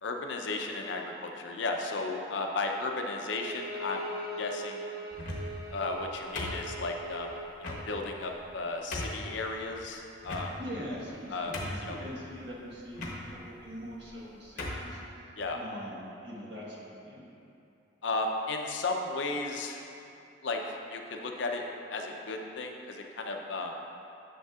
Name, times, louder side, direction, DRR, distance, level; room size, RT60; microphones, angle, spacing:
voice 1, 0.0-4.1 4.4-4.8 5.7-7.3 7.6-10.5 11.3-11.5 11.8-12.0 15.4-15.6 18.0-19.9 20.4-21.6 21.9-23.7, left 3 dB, 65° left, 2 dB, 0.6 m, -34 dB
Bowed string instrument, 3.3-7.5, right 1 dB, 15° right, 1.6 m, -41 dB
sound 1, 5.1-5.6 6.4-7.0 7.6-7.8 8.4-8.5 8.9-9.3 10.2-10.8 11.2-11.3 11.5-12.0 12.9-13.2 14.0-14.2 14.6-14.9, left 1 dB, 40° left, 0.9 m, -37 dB
voice 2, 10.6-13.0 13.3-17.2, equal, 60° right, -5 dB, 1.4 m, -42 dB
9.0 x 6.6 x 2.4 m, 2.7 s
head